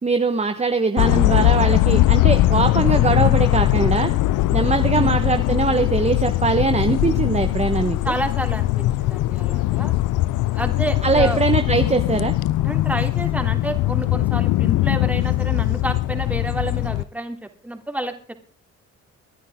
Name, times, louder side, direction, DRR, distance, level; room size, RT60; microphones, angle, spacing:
voice 1, 0.0-4.1 4.5-8.0 11.0-12.3, right 4 dB, 20° right, 7 dB, 1.3 m, -21 dB
sound 1, 1.0-17.0, left 16 dB, 85° left, 0.6 m, -20 dB
voice 2, 8.0-9.9 10.5-11.4 12.6-17.4 17.6-18.1, right 1 dB, 5° right, 5 dB, 3.1 m, -29 dB
25.5 x 10.0 x 3.7 m, 0.39 s
cardioid pair, 90°, 30 cm